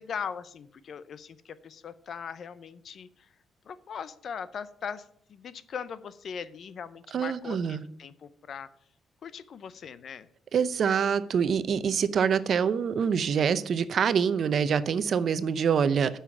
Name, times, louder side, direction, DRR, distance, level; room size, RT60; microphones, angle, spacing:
voice 1, 0.0-3.1 3.7-5.0 5.3-8.7 9.2-10.3, left 7 dB, 55° left, 0.6 m, -39 dB
voice 2, 7.1-7.8 10.5-16.2, right 7 dB, 55° right, 0.7 m, -25 dB
9.5 x 5.7 x 7.0 m
cardioid pair, 90°, 0 cm